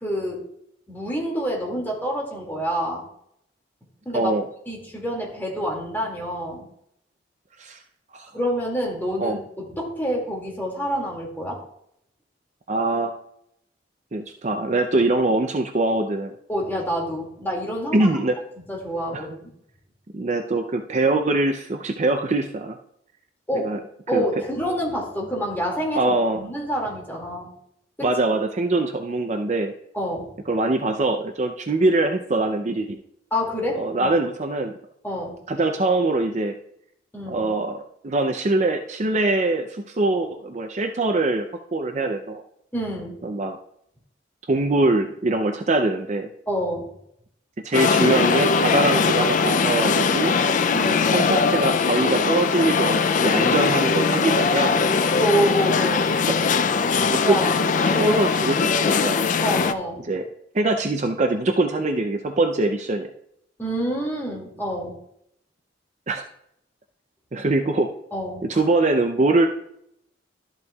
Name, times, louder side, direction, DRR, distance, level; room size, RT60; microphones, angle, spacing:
voice 1, 0.0-0.4 0.9-3.1 4.1-4.4 4.7-6.7 8.3-11.6 16.5-18.1 18.7-19.5 23.5-23.7 24.1-27.5 28.0-28.1 29.9-30.3 33.3-34.1 35.0-35.3 37.1-37.4 42.7-43.2 46.5-46.9 50.7-51.1 55.2-56.1 57.2-57.5 57.8-58.2 59.4-60.0 63.6-64.9 68.1-68.6, equal, 10° left, -2 dB, 2.2 m, -27 dB
voice 2, 4.1-4.4 7.6-7.8 8.1-8.3 9.2-9.4 12.7-13.1 14.1-16.3 17.9-18.4 19.1-19.2 20.1-22.8 23.5-23.8 24.1-24.2 25.9-26.4 28.0-29.7 30.5-33.0 33.7-34.7 35.5-36.5 37.3-41.5 41.7-42.4 43.2-43.6 44.5-46.3 47.6-50.3 51.1-54.8 56.1-56.2 57.1-57.4 58.0-59.2 60.1-60.2 60.5-63.1 66.1-66.2 67.3-67.9 68.4-69.5, right 2 dB, 35° right, 5 dB, 0.5 m, -23 dB
sound 1, 47.7-59.7, left 5 dB, 40° left, 0.4 m, -21 dB
12.5 x 8.0 x 2.3 m, 0.73 s
head